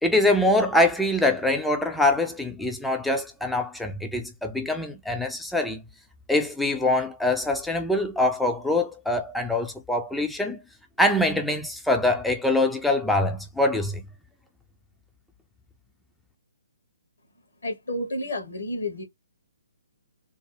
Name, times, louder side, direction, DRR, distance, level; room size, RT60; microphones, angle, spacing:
voice 1, 0.0-5.8 6.3-10.6 11.0-14.0, left 1 dB, ahead, 0.4 m, -24 dB
voice 2, 17.6-19.0, left 1 dB, 70° left, 1.5 m, -30 dB
3.4 x 2.0 x 3.4 m
figure-of-eight pair, 135°, 0 cm